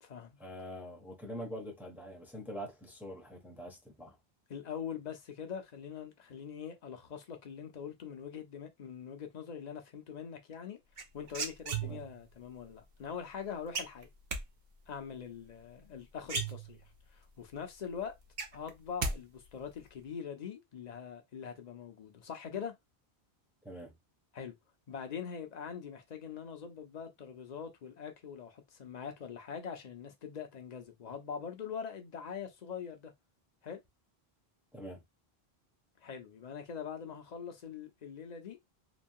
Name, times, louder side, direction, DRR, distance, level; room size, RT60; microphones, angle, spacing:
voice 1, 0.4-4.2 11.8-12.1 23.6-24.0 34.7-35.0, equal, ahead, 0.6 m, -44 dB
voice 2, 4.5-10.8 11.1-14.1 14.9-18.1 18.5-22.8 24.3-24.5 24.9-33.1 33.6-33.8 36.0-38.6, left 7 dB, 50° left, 0.7 m, -43 dB
sound 1, 11.0-12.3 13.7-14.4 15.8-15.9 16.2-17.1 17.5-17.6 17.9-19.2 19.4-19.9, right 4 dB, 50° right, 0.8 m, -36 dB
3.0 x 2.2 x 2.6 m
omnidirectional pair, 1.1 m